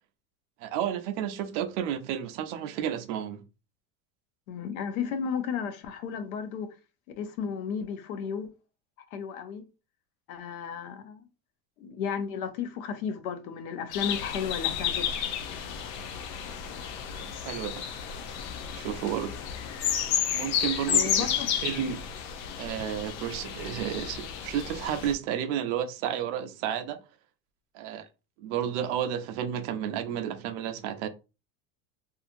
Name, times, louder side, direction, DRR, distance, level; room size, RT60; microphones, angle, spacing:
voice 1, 0.6-3.4 17.4-17.9 18.7-19.4 20.3-22.0 22.6-27.0 27.7-28.1 28.4-31.1, right 9 dB, 60° right, 0.6 m, -32 dB
voice 2, 4.5-6.7 7.2-8.5 9.1-9.6 10.3-11.2 11.8-15.1 20.9-21.5, left 7 dB, 85° left, 0.7 m, -33 dB
sound 1, 13.9-25.1, left 8 dB, 50° left, 0.5 m, -32 dB
2.8 x 2.4 x 2.5 m
supercardioid pair, 160°, 42 cm